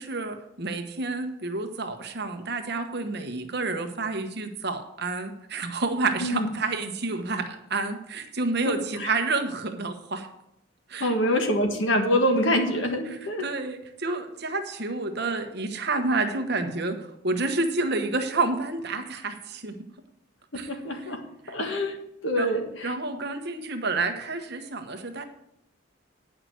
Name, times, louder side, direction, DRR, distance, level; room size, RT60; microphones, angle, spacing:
voice 1, 0.0-10.3 10.9-11.1 13.1-17.0 17.2-19.7 20.5-20.7 21.5-21.6 22.4-22.5 22.8-25.2, right 3 dB, 55° right, 6 dB, 1.2 m, -29 dB
voice 2, 8.7-9.1 11.0-13.5 20.5-21.2 21.5-22.0 22.2-22.9, equal, 65° left, 4 dB, 1.6 m, -25 dB
9.3 x 5.9 x 7.7 m, 0.80 s
head